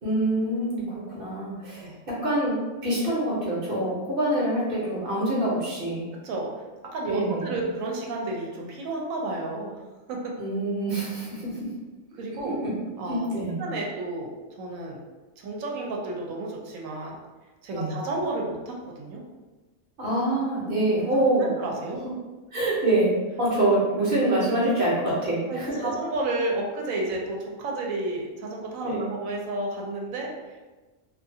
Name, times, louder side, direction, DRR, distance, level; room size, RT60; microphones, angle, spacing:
voice 1, 0.0-2.6 2.8-6.0 7.1-7.6 10.4-11.7 12.4-12.7 13.1-13.6 17.7-18.0 20.0-21.5 22.5-25.9 28.8-29.1, right 1 dB, 50° right, -7 dB, 0.9 m, -25 dB
voice 2, 6.9-9.8 10.1-10.3 12.1-12.6 13.0-13.3 13.6-14.3 14.6-15.0 15.4-17.2 17.6-19.2 21.4-22.0 25.5-30.3, right 2 dB, 80° right, -1 dB, 1.0 m, -31 dB
2.5 x 2.3 x 2.7 m, 1.2 s
omnidirectional pair, 1.4 m